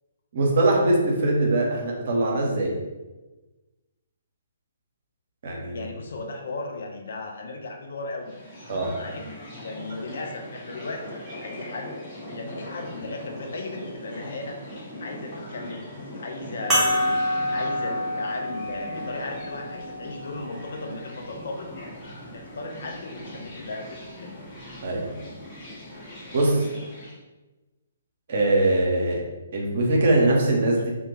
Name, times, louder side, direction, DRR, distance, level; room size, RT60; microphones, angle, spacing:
voice 1, 0.3-2.8 5.4-5.9 8.7-8.9 24.8-25.1 26.3-26.6 28.3-29.2 29.5-30.9, right 2 dB, 50° right, -1 dB, 0.6 m, -22 dB
voice 2, 5.7-8.4 9.0-9.3 9.6-12.0 12.3-14.6 15.0-15.9 16.2-17.2 17.5-21.7 22.3-24.4, left 3 dB, 55° left, 2 dB, 0.4 m, -36 dB
sound 1, 8.2-27.2, left 1 dB, 25° left, 1.0 m, -41 dB
sound 2, 16.7-21.5 22.3-22.4 24.5-24.6, left 1 dB, 10° right, 0.7 m, -28 dB
2.1 x 2.1 x 3.1 m, 1.1 s
figure-of-eight pair, 130°, 0 cm